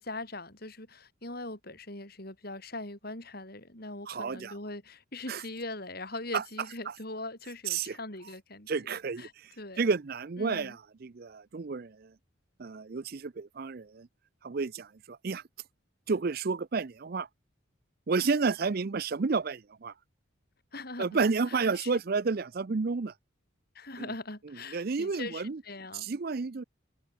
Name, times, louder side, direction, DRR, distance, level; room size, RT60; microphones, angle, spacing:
voice 1, 0.0-9.3 9.6-9.8 10.4-10.8 20.7-21.9 23.8-26.1, left 2 dB, 45° left, 5.1 m, -41 dB
voice 2, 4.1-4.5 5.3-5.4 6.3-6.4 6.9-7.0 7.7-8.0 8.7-9.5 9.8-12.1 12.6-14.1 14.4-15.4 16.1-17.3 18.1-19.9 21.0-23.1 24.0-24.1 24.7-25.6 25.9-26.6, right 4 dB, 45° right, 0.5 m, -31 dB
head